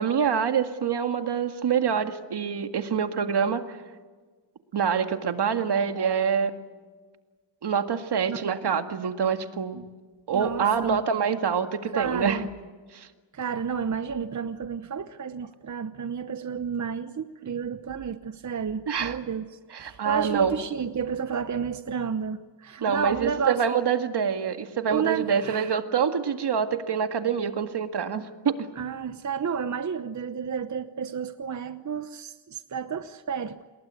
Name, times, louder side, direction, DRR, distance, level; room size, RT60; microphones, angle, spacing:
voice 1, 0.0-3.8 4.7-6.5 7.6-9.8 10.3-12.4 12.9-13.1 18.9-19.2 19.7-20.5 22.8-28.7, right 7 dB, 65° right, 7 dB, 2.0 m, -26 dB
voice 2, 10.3-11.0 11.9-12.5 13.3-23.6 24.9-25.7 28.8-33.6, right 6 dB, 40° right, 11 dB, 0.9 m, -31 dB
29.0 x 21.0 x 8.3 m, 1.4 s
cardioid pair, 90°, 44 cm